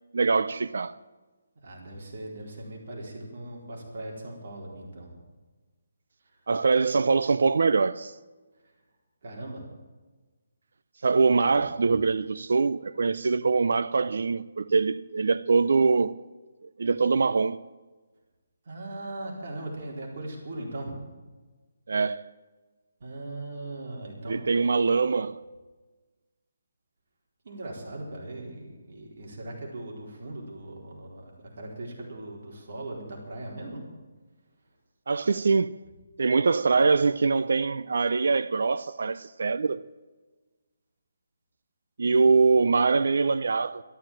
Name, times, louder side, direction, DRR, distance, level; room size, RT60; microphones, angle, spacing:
voice 1, 0.1-1.0 6.5-8.1 11.0-16.1 16.8-17.6 21.9-22.3 24.3-25.4 35.1-35.8 36.2-39.8 42.0-43.8, right 4 dB, 65° right, 0.6 m, -23 dB
voice 2, 1.6-5.1 9.2-9.6 11.5-11.7 18.7-21.0 23.0-24.7 27.4-33.8 42.3-42.4, right 2 dB, 50° right, 4.2 m, -39 dB
13.0 x 12.5 x 7.4 m
hypercardioid pair, 170°, 0 cm